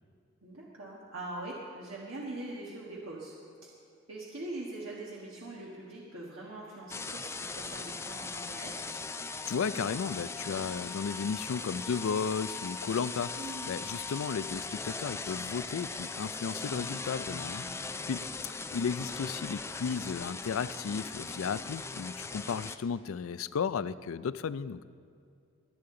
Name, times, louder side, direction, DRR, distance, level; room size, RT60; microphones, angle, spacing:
voice 1, 0.4-3.3 3.6-3.7 4.1-8.7 13.4-13.9 15.8-15.9 17.4-18.1 21.2-21.4, right 2 dB, 75° right, -5 dB, 1.5 m, -43 dB
sound 1, 6.9-22.8, left 4 dB, 15° left, 0.4 m, -39 dB
voice 2, 9.5-17.6 18.1-18.2 18.7-24.8, left 6 dB, 85° left, 16 dB, 0.4 m, -34 dB
22.0 x 8.5 x 3.8 m, 2.3 s
head